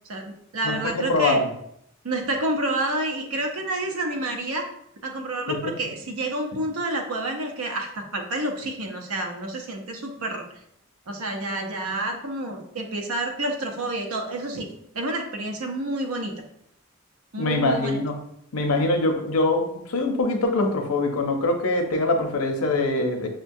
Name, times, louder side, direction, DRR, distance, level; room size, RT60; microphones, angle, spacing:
voice 1, 0.0-1.4 2.0-4.7 5.0-10.4 11.1-14.7 14.9-16.3 17.3-18.0, right 1 dB, 85° right, 3 dB, 0.7 m, -29 dB
voice 2, 0.6-1.5 5.5-5.6 17.4-18.2 18.5-23.3, left 2 dB, 85° left, 4 dB, 0.6 m, -23 dB
6.2 x 2.2 x 2.6 m, 0.75 s
head